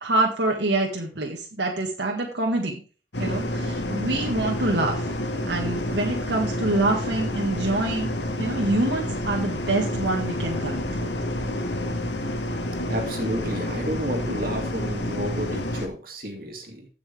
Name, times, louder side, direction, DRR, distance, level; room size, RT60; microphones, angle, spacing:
voice 1, 0.0-2.8 3.2-5.1 5.5-11.1, right 2 dB, 80° right, 0 dB, 1.9 m, -26 dB
sound 1, 3.1-15.9, left 1 dB, 80° left, 1.8 m, -29 dB
voice 2, 12.9-16.9, right 1 dB, 55° right, 2 dB, 2.7 m, -31 dB
15.5 x 6.2 x 3.6 m, 0.36 s
head